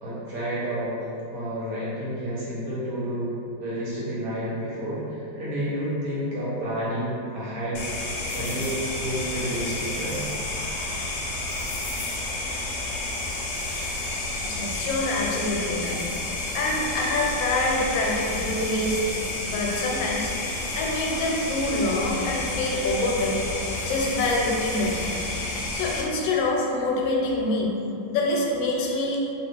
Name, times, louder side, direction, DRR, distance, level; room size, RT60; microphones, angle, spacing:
voice 1, 0.0-1.0 1.3-3.3 3.6-7.8 8.1-10.3, equal, 65° right, -8 dB, 1.0 m, -30 dB
sound 1, 7.7-26.0, left 2 dB, 70° left, 1.0 m, -30 dB
voice 2, 14.4-16.0 16.5-19.0 19.5-20.3 20.7-23.4 23.8-25.1 25.7-27.7 28.1-29.2, left 2 dB, 90° left, -2 dB, 1.3 m, -26 dB
2.9 x 2.4 x 3.4 m, 2.7 s
omnidirectional pair, 2.0 m